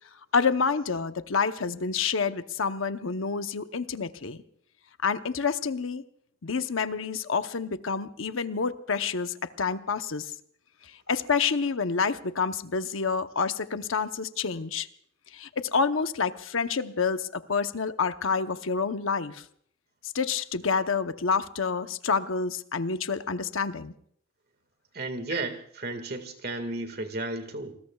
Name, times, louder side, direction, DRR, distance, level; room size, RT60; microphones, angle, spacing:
voice 1, 0.3-4.4 5.0-6.0 6.4-10.3 11.1-14.9 15.3-19.4 20.0-23.9, left 5 dB, 90° left, 10 dB, 0.9 m, -28 dB
voice 2, 24.9-27.7, right 2 dB, 50° right, 8 dB, 1.9 m, -33 dB
29.5 x 20.5 x 2.4 m, 0.63 s
head